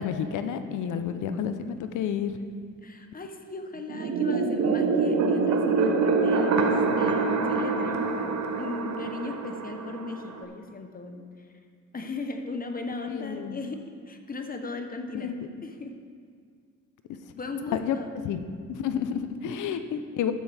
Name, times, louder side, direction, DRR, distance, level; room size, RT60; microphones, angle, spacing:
voice 1, 0.0-2.3 13.1-13.6 15.1-15.3 17.8-18.0 18.2-20.3, left 8 dB, 80° left, 9 dB, 0.7 m, -30 dB
voice 2, 2.8-11.5 11.9-15.4 15.6-16.0 17.4-18.1 19.5-19.8, left 3 dB, 30° left, 5 dB, 0.9 m, -37 dB
sound 1, 3.9-10.4, right 4 dB, 65° right, 1.0 m, -25 dB
13.0 x 10.0 x 3.5 m, 2.1 s
cardioid pair, 90°, 30 cm